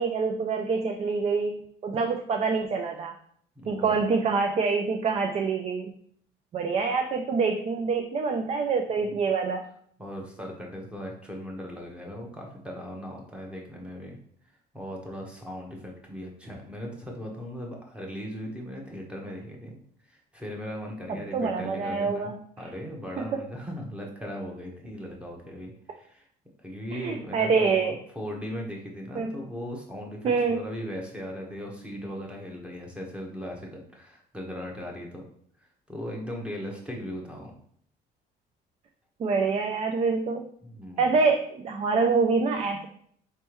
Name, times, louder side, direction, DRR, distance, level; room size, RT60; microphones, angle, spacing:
voice 1, 0.0-3.1 3.7-5.9 6.5-9.6 21.3-22.3 23.2-23.4 26.9-27.9 29.2-29.3 30.2-30.6 39.2-40.5 41.0-42.9, right 4 dB, 35° right, 4 dB, 0.4 m, -26 dB
voice 2, 3.6-4.0 9.0-9.1 10.0-14.2 14.5-19.8 20.1-26.3 26.6-35.3 35.6-37.5 40.6-41.1, equal, 5° right, -1 dB, 1.1 m, -38 dB
4.3 x 3.4 x 3.0 m, 0.63 s
cardioid pair, 110°, 17 cm